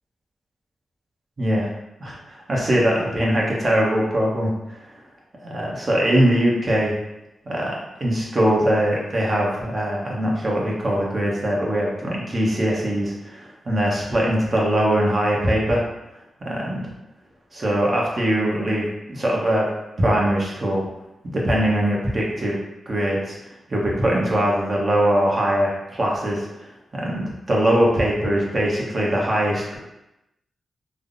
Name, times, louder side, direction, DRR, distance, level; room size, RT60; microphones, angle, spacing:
voice 1, 1.4-1.7 2.0-4.8 5.4-7.0 7.5-15.8 16.4-16.9 17.5-19.7 20.0-20.8 21.3-22.6 22.9-23.4 23.7-26.5 26.9-29.8, right 1 dB, 45° right, -3 dB, 0.9 m, -21 dB
3.4 x 2.0 x 2.5 m, 0.92 s
cardioid pair, 50°, 0 cm